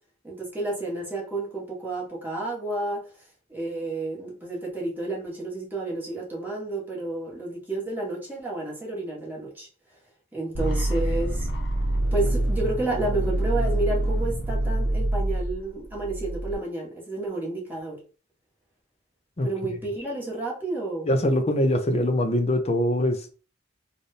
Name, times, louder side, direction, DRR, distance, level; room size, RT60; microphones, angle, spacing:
voice 1, 0.2-3.0 3.5-9.7 10.3-11.5 12.1-18.0 19.4-21.1, right 2 dB, 10° right, -4 dB, 1.5 m, -31 dB
sound 1, 10.5-16.5, right 1 dB, 75° left, 1.0 m, -26 dB
voice 2, 21.0-23.3, left 1 dB, 35° left, 6 dB, 0.6 m, -23 dB
3.3 x 2.6 x 4.1 m, 0.37 s
head